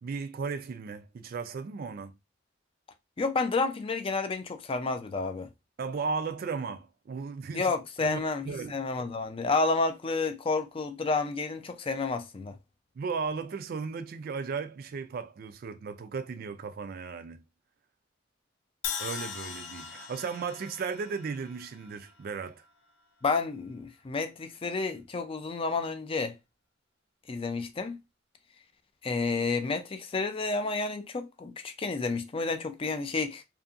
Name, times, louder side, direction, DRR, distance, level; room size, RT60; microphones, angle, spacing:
voice 1, 0.0-2.2 5.8-7.7 8.0-8.7 13.0-17.4 19.0-22.6, right 5 dB, 50° right, 0.3 m, -35 dB
voice 2, 3.2-5.5 7.5-12.5 23.2-26.3 27.3-28.0 29.0-33.4, left 3 dB, 30° left, 0.4 m, -30 dB
Crash cymbal, 18.8-22.9, left 7 dB, 80° left, 0.5 m, -40 dB
2.7 x 2.6 x 2.4 m
head